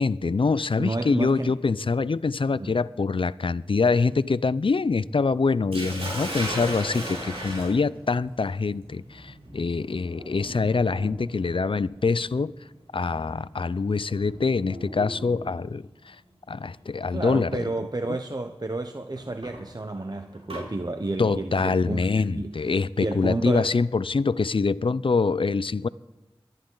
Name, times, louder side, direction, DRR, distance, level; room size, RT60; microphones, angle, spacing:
voice 1, 0.0-12.5 12.9-16.2 16.5-17.7 21.2-25.9, left 4 dB, 60° left, 0.4 m, -25 dB
voice 2, 0.8-1.6 2.6-2.7 17.1-22.0 22.3-22.6 23.0-23.7, right 2 dB, 40° right, 0.8 m, -30 dB
Sink (filling or washing), 5.7-15.7 16.8-17.1 17.6-17.7 19.2-20.7, right 1 dB, 80° right, 5.9 m, -37 dB
22.5 x 11.0 x 3.9 m
wide cardioid pair, 40°, 10 cm